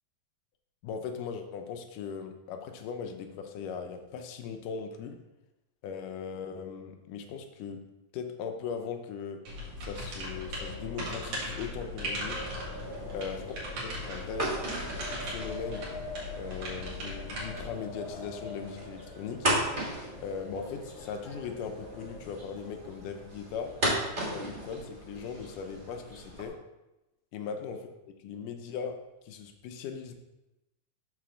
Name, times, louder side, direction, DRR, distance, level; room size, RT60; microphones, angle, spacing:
voice 1, 0.8-5.2 5.8-7.8 8.1-9.4 9.8-12.4 13.1-13.4 13.8-14.5 15.1-15.8 16.4-19.5 20.2-23.7 24.3-26.6 27.3-27.8 28.1-29.0 29.2-30.1, left 6 dB, 85° left, 5 dB, 2.4 m, -39 dB
sound 1, 9.4-17.7, equal, 65° right, 3.1 m, -38 dB
Wind, 10.2-22.9, left 2 dB, 65° left, 1.6 m, -45 dB
sound 2, 12.3-26.5, right 1 dB, 30° right, 0.9 m, -37 dB
7.2 x 4.1 x 6.3 m, 0.99 s
omnidirectional pair, 3.6 m